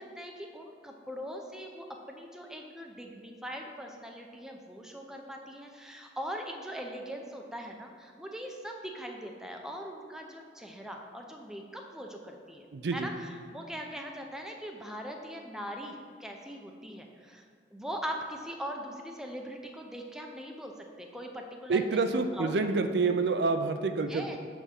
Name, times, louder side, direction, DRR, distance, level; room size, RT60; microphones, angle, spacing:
voice 1, 0.0-22.6 24.0-24.4, equal, 5° right, 1 dB, 0.5 m, -41 dB
voice 2, 12.7-13.1 21.7-24.4, right 4 dB, 65° right, 8 dB, 0.4 m, -28 dB
8.2 x 3.6 x 5.9 m, 2.2 s
head